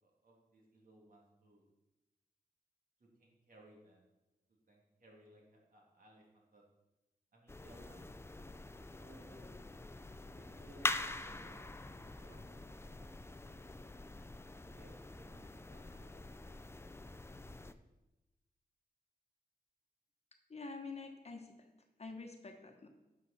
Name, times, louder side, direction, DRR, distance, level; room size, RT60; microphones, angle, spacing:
voice 1, 0.0-1.6 3.0-4.0 4.7-6.6 7.3-8.1 8.9-9.5 10.2-11.6 11.9-13.4 14.6-16.4, right 1 dB, 60° right, -2 dB, 2.8 m, -62 dB
sound 1, 7.5-17.7, left 2 dB, 15° left, 0.5 m, -45 dB
voice 2, 20.5-21.7 22.0-22.9, left 3 dB, 40° left, 4 dB, 1.2 m, -47 dB
11.0 x 6.6 x 4.3 m, 1.0 s
cardioid pair, 75°, 16 cm